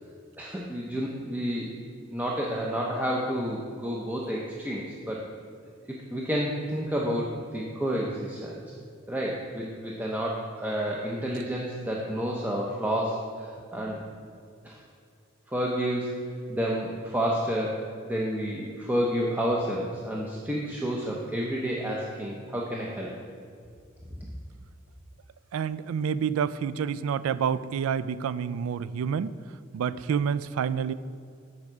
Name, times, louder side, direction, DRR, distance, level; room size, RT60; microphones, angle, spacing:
voice 1, 0.4-1.8 2.1-5.2 6.1-8.6 9.1-14.0 14.6-14.8 15.5-16.1 16.5-23.1, equal, 10° right, -3 dB, 0.6 m, -30 dB
voice 2, 25.5-29.3 29.7-30.9, right 7 dB, 75° right, 16 dB, 0.3 m, -28 dB
7.1 x 4.7 x 6.2 m, 2.3 s
head